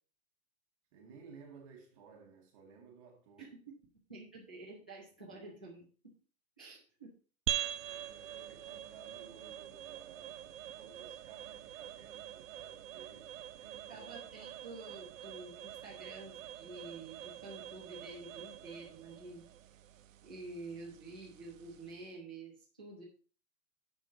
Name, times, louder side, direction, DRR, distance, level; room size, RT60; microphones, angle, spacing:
voice 1, 0.9-3.5 5.3-5.4 7.7-14.1, right 5 dB, 25° right, 0.8 m, -57 dB
voice 2, 3.4-3.7 4.1-5.8 6.6-7.1 13.9-19.4 20.2-23.0, right 3 dB, 5° left, 0.4 m, -49 dB
sound 1, 7.5-22.1, right 11 dB, 65° right, 0.7 m, -45 dB
7.5 x 5.7 x 5.1 m
hypercardioid pair, 165°, 43 cm